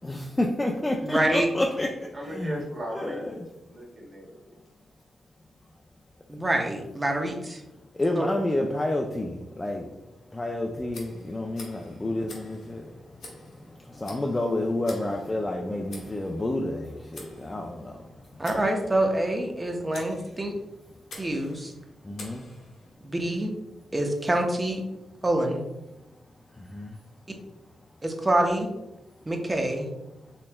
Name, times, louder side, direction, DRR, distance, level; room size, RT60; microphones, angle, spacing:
voice 1, 0.0-1.9 2.3-2.6 2.9-3.3 8.0-9.9 10.3-12.8 14.0-17.9 22.1-22.4 26.7-26.9, left 1 dB, 25° left, 1 dB, 0.4 m, -29 dB
voice 2, 1.0-1.5 6.3-7.6 8.1-8.3 18.4-20.5 21.2-21.7 23.0-23.5 23.9-24.8 25.2-25.6 28.0-28.7 29.3-29.9, right 1 dB, 25° right, 3 dB, 0.7 m, -26 dB
voice 3, 2.1-3.3 3.7-4.5 14.0-14.2, equal, 40° right, -2 dB, 1.4 m, -37 dB
Tick, 10.9-23.0, left 2 dB, 80° left, 1.1 m, -49 dB
4.2 x 3.1 x 2.2 m, 0.93 s
supercardioid pair, 55°, 0 cm